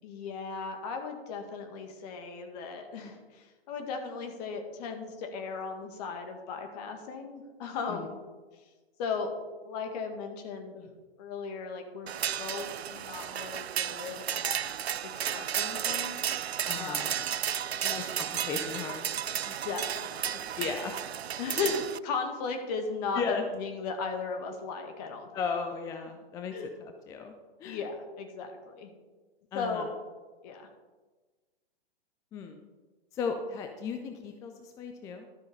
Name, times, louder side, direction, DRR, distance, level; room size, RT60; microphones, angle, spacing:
voice 1, 0.0-8.2 9.0-9.3 9.6-10.9 11.2-12.1 12.4-14.6 15.1-16.4 16.7-17.2 17.8-18.0 19.5-20.7 21.4-21.7 22.0-25.3 26.5-26.7 27.6-28.9 29.5-29.9 30.4-30.7, left 5 dB, 40° left, 5 dB, 1.9 m, -37 dB
sound 1, 12.1-22.0, right 9 dB, 80° right, 0.5 m, -33 dB
voice 2, 16.6-17.1 18.0-19.0 20.6-21.0 21.6-21.8 23.1-23.5 25.3-27.3 27.6-27.8 29.5-29.8 32.3-32.6 33.1-35.3, left 5 dB, 10° left, 5 dB, 0.4 m, -36 dB
12.5 x 6.3 x 5.4 m, 1.3 s
figure-of-eight pair, 115°, 31 cm